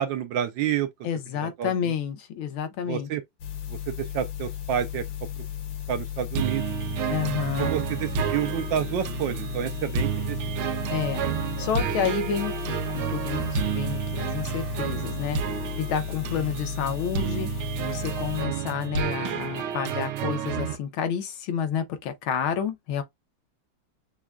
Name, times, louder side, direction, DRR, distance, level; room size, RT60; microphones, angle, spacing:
voice 1, 0.0-0.9 1.4-1.9 2.9-3.2 3.7-5.0 5.4-5.5 5.9-6.6 7.6-10.7 11.6-11.7, right 10 dB, 75° right, 1.2 m, -29 dB
voice 2, 1.0-3.1 7.1-7.7 10.9-11.2 11.6-15.4 15.8-17.5 17.8-23.0, left 8 dB, 85° left, 1.6 m, -30 dB
sound 1, 3.4-18.4, left 11 dB, 70° left, 1.5 m, -35 dB
sound 2, 6.4-20.8, right 8 dB, 90° right, 1.5 m, -30 dB
5.9 x 2.2 x 2.4 m
omnidirectional pair, 2.3 m